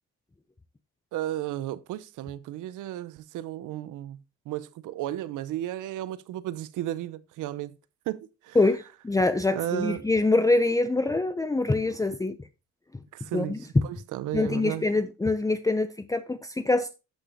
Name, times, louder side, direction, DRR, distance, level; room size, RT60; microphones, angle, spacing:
voice 1, 1.1-7.8 8.1-8.6 9.5-10.1 13.1-14.9, right 13 dB, 90° right, 0.8 m, -34 dB
voice 2, 8.6-12.4 13.3-13.6 14.3-16.9, left 2 dB, 10° left, 0.6 m, -25 dB
13.0 x 5.7 x 4.1 m
cardioid pair, 90°, 30 cm